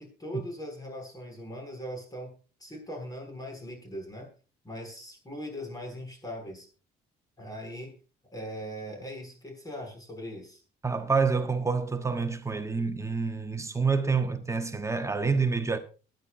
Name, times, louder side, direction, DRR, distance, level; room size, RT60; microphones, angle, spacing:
voice 1, 0.0-2.4 2.6-4.3 4.6-6.7 7.4-7.9 8.3-10.6, equal, 20° left, 6.9 m, -40 dB
voice 2, 10.8-15.8, right 4 dB, 15° right, 1.3 m, -27 dB
22.0 x 10.5 x 2.7 m
cardioid pair, 110°, 17 cm